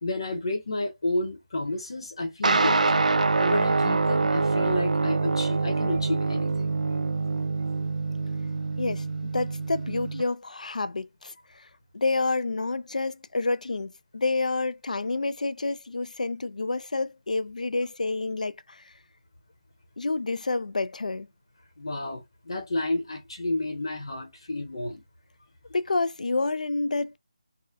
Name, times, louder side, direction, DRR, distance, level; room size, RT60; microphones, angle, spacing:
voice 1, 0.0-3.1 3.4-6.7 21.8-25.0, left 2 dB, 40° left, 0.8 m, -31 dB
sound 1, 2.4-10.2, right 3 dB, 85° right, 0.4 m, -25 dB
voice 2, 9.3-11.7 11.9-18.9 20.0-21.3 25.7-27.2, left 3 dB, 85° left, 0.4 m, -29 dB
3.5 x 2.1 x 2.5 m
figure-of-eight pair, 180°, 4 cm